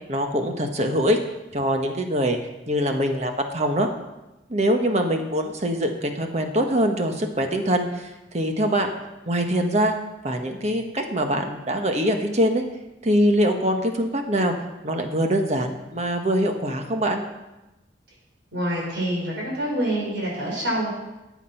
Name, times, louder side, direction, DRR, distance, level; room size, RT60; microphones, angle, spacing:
voice 1, 0.1-1.2 1.5-2.4 2.7-3.9 4.5-8.1 8.3-8.9 9.3-9.9 10.2-12.6 13.0-14.5 14.8-17.2, equal, 35° right, 4 dB, 1.4 m, -23 dB
voice 2, 18.5-20.9, right 1 dB, 65° right, -3 dB, 4.4 m, -26 dB
13.5 x 8.4 x 5.8 m, 0.99 s
head